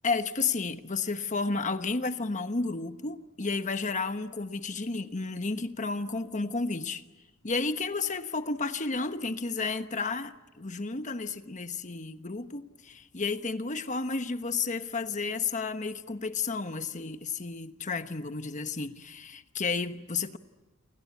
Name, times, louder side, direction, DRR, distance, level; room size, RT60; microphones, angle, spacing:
voice 1, 0.0-7.0 7.4-20.4, left 4 dB, 35° left, 1.2 m, -32 dB
29.0 x 24.5 x 8.5 m
head